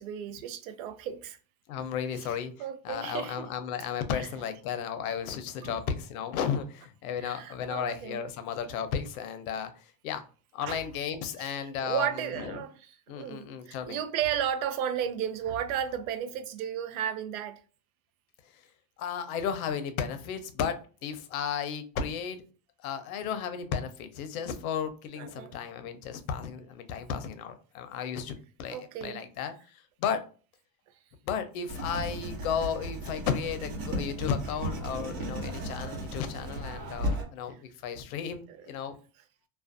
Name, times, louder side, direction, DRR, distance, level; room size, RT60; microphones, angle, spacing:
voice 1, 0.0-1.4 2.6-3.5 4.1-4.3 5.6-5.8 7.2-8.2 10.6-10.8 11.4-11.5 11.8-12.7 13.1-17.6 25.2-25.6 28.7-29.2 38.5-38.6, right 9 dB, 85° right, 0.5 m, -34 dB
voice 2, 1.7-2.5 2.8-10.2 10.5-12.6 13.1-14.0 18.5-18.6 19.0-22.4 22.8-30.2 31.3-39.0, left 7 dB, 90° left, 0.6 m, -34 dB
Writing, 31.7-37.2, equal, 70° right, 1.0 m, -35 dB
2.4 x 2.2 x 2.5 m
supercardioid pair, 145°, 41 cm